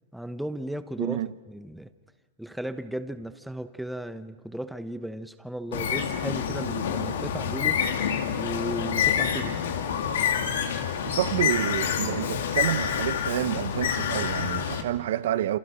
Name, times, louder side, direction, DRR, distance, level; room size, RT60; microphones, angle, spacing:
voice 1, 0.1-1.2 1.5-1.9 2.4-7.8 8.4-9.6, right 1 dB, ahead, 1.0 m, -35 dB
voice 2, 1.0-1.3 10.8-15.6, right 12 dB, 70° right, 0.7 m, -29 dB
Bird, 5.7-14.8, left 8 dB, 85° left, 2.4 m, -27 dB
28.0 x 27.5 x 5.1 m
supercardioid pair, 145°, 0 cm